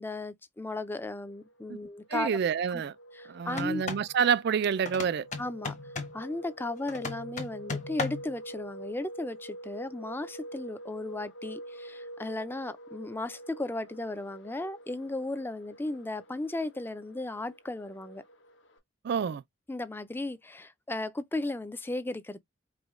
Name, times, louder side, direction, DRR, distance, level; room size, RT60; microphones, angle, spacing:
voice 1, 0.0-2.3 2.7-2.8 3.1-3.8 5.4-5.7 6.1-18.2 19.7-22.4, left 2 dB, 10° left, 0.4 m, -35 dB
sound 1, 1.2-18.8, right 1 dB, 70° left, 1.2 m, -47 dB
voice 2, 2.1-2.9 3.3-5.3 19.0-19.4, right 7 dB, 60° right, 0.3 m, -28 dB
sound 2, 3.5-4.1 4.8-6.2 6.9-8.3, left 4 dB, 40° left, 1.1 m, -36 dB
5.0 x 2.1 x 3.6 m
head